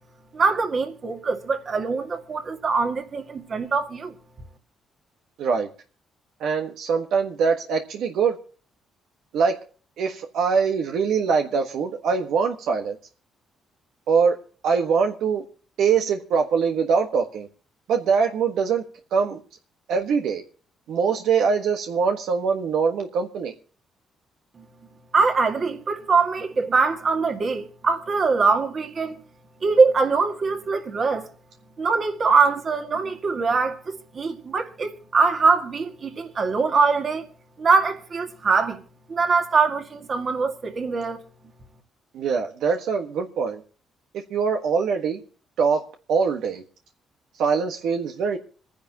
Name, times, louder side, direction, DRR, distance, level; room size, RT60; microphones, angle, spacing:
voice 1, 0.3-4.1 24.6-24.7 25.1-29.2 29.6-31.3 31.8-37.2 37.6-38.8 39.1-41.2, right 4 dB, 45° right, 2.1 m, -22 dB
voice 2, 6.4-8.4 9.3-9.6 10.0-13.0 14.1-14.4 14.6-15.4 15.8-17.5 17.9-18.8 19.1-19.4 19.9-20.4 20.9-23.5 42.1-43.6 44.3-45.2 45.6-45.8 46.1-46.6 47.4-48.4, right 5 dB, 80° right, 1.5 m, -23 dB
26.5 x 10.0 x 2.9 m
cardioid pair, 90°, 0 cm